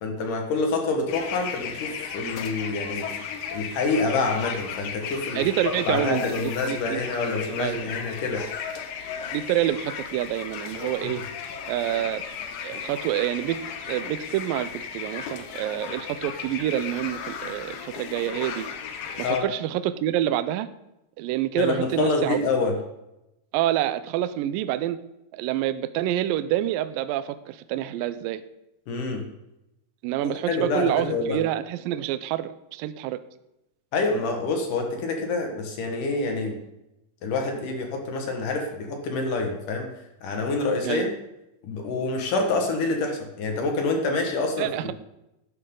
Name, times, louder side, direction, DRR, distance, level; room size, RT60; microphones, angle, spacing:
voice 1, 0.0-3.1 3.5-5.4 5.9-8.4 11.0-11.2 19.2-19.5 21.6-22.8 28.9-29.2 30.5-31.4 33.9-36.6 37.2-39.9 40.2-41.1 41.6-44.9, left 3 dB, 60° left, 3 dB, 2.7 m, -27 dB
sound 1, 1.1-19.4, left 7 dB, 75° left, 1.8 m, -35 dB
voice 2, 5.4-7.0 7.6-7.9 9.3-11.2 11.7-12.2 12.6-18.7 19.2-20.7 21.2-22.4 23.5-25.0 25.3-28.4 30.0-33.2 40.8-41.1 44.6-44.9, right 12 dB, 90° right, 12 dB, 2.0 m, -27 dB
12.0 x 10.0 x 3.8 m, 0.90 s
omnidirectional pair, 4.7 m